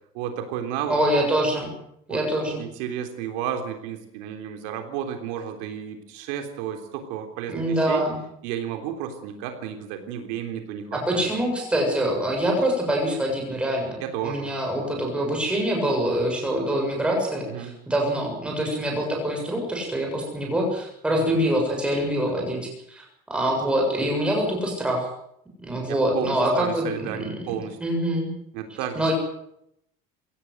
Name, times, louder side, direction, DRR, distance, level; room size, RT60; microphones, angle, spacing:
voice 1, 0.1-1.0 2.1-2.2 2.6-8.1 8.4-11.3 14.0-14.9 17.5-17.7 25.9-27.8 28.5-29.0, right 9 dB, 70° right, 6 dB, 3.5 m, -32 dB
voice 2, 0.9-1.7 2.1-2.6 7.5-8.2 10.9-14.0 14.2-25.1 25.6-27.5 27.8-28.3 29.0-29.1, right 1 dB, 5° right, 1 dB, 7.0 m, -25 dB
23.0 x 17.5 x 7.9 m, 0.75 s
cardioid pair, 170°, 17 cm